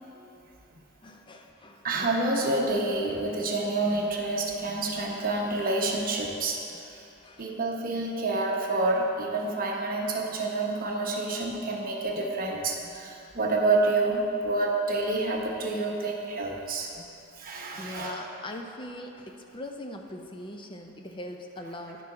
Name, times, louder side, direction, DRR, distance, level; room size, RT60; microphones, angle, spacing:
voice 1, 1.0-1.8 7.2-7.6 17.8-22.0, left 1 dB, 25° left, 3 dB, 0.5 m, -41 dB
voice 2, 1.8-6.6 7.4-16.9 17.4-18.2, right 2 dB, 45° right, -1 dB, 0.9 m, -28 dB
10.5 x 4.3 x 4.8 m, 2.9 s
head